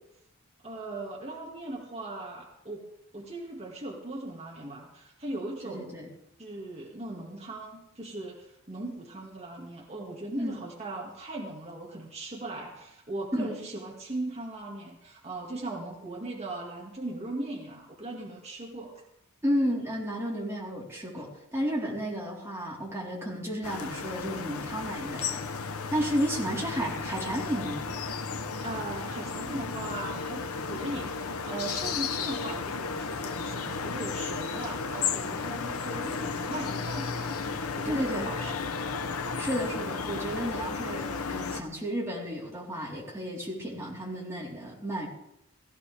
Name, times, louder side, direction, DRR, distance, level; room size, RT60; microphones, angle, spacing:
voice 1, 0.6-2.8 3.1-5.9 6.4-18.9 28.6-38.6, right 2 dB, 30° right, -3 dB, 2.2 m, -39 dB
voice 2, 5.6-6.1 10.4-10.6 13.3-13.5 19.4-27.8 37.8-38.3 39.4-45.1, equal, 10° right, -5 dB, 4.1 m, -32 dB
sound 1, 23.6-41.6, left 5 dB, 90° left, 0.9 m, -34 dB
16.5 x 16.0 x 3.5 m, 0.81 s
head